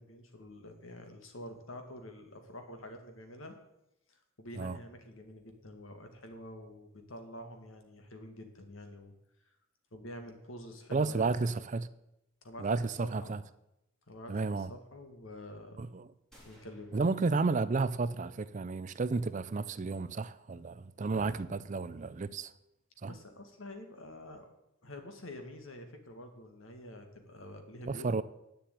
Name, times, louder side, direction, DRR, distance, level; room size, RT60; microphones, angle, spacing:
voice 1, 0.0-3.6 4.1-9.2 9.4-9.5 9.9-11.6 12.4-12.7 13.0-13.4 14.1-15.9 16.4-16.9 23.0-24.5 24.8-28.1, left 1 dB, 75° left, 1.9 m, -48 dB
voice 2, 10.9-11.9 12.6-13.4 14.3-14.7 15.8-16.1 16.9-22.5 23.0-23.1 27.9-28.2, right 4 dB, 35° right, 0.4 m, -32 dB
sound 1, 16.3-18.2, equal, 5° left, 2.8 m, -63 dB
9.3 x 7.0 x 9.0 m
head